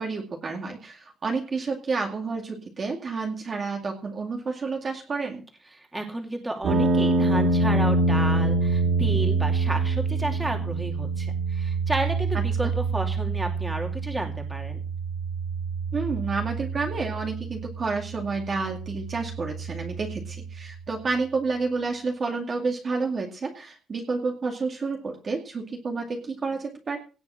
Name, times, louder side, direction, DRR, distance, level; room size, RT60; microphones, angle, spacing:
voice 1, 0.0-5.4 12.6-12.7 15.9-27.0, right 4 dB, 35° right, 2 dB, 2.2 m, -30 dB
voice 2, 5.8-14.8, right 1 dB, 10° right, 3 dB, 2.7 m, -32 dB
sound 1, 6.6-20.7, right 3 dB, 85° right, 2.6 m, -26 dB
17.5 x 7.0 x 6.3 m, 0.37 s
wide cardioid pair, 175°, 0 cm